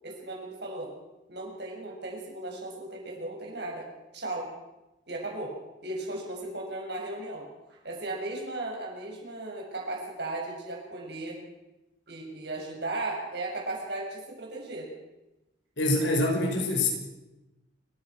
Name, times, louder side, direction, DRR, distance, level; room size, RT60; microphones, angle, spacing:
voice 1, 0.0-0.9 1.3-3.9 4.1-4.5 5.1-5.5 5.8-11.4 12.1-14.9, right 2 dB, 60° right, -1 dB, 7.2 m, -36 dB
voice 2, 15.8-16.9, left 2 dB, 70° left, 2 dB, 5.5 m, -25 dB
29.0 x 15.0 x 6.2 m, 1.0 s
head